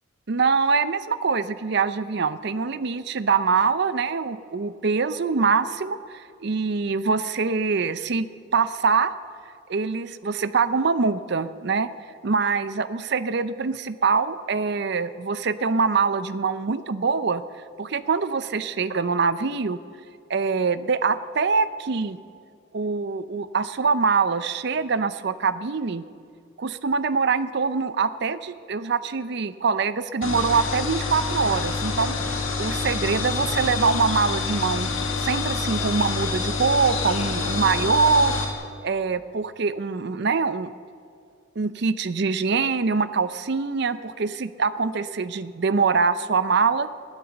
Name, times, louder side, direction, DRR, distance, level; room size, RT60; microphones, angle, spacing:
voice 1, 0.3-8.3 8.5-9.1 9.7-11.9 12.2-17.4 17.8-19.8 20.3-22.2 22.7-26.1 26.6-32.2 32.6-34.9 35.2-38.4 38.8-40.7 41.6-46.9, right 5 dB, 55° right, 13 dB, 0.6 m, -24 dB
sound 1, 30.2-38.5, left 4 dB, 85° left, 1.7 m, -27 dB
18.0 x 9.0 x 7.1 m, 2.2 s
head